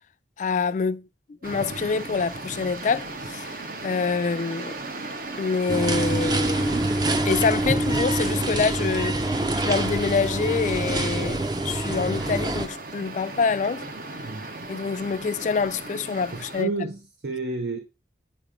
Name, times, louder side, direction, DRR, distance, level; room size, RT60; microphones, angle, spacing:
voice 1, 0.4-1.1 1.4-3.5 3.8-4.7 5.4-6.8 7.2-13.9 14.7-16.7, left 5 dB, 45° left, 0.3 m, -26 dB
sound 1, 1.4-16.6, right 2 dB, 50° right, 0.8 m, -38 dB
sound 2, 5.7-12.7, right 2 dB, 25° right, 0.5 m, -25 dB
voice 2, 16.3-17.8, right 3 dB, 80° right, 0.9 m, -31 dB
8.7 x 3.0 x 5.0 m
head